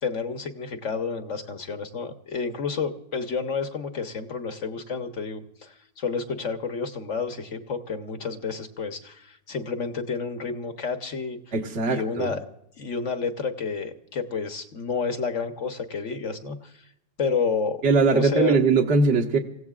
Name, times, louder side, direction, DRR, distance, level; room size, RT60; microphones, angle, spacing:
voice 1, 0.0-11.5 11.9-12.4 12.8-16.9 17.2-17.8 18.1-18.6, left 5 dB, 50° left, 7 dB, 1.3 m, -30 dB
voice 2, 11.5-12.3 17.8-19.4, right 4 dB, 45° right, 3 dB, 1.7 m, -21 dB
27.5 x 16.0 x 2.4 m, 0.78 s
omnidirectional pair, 1.7 m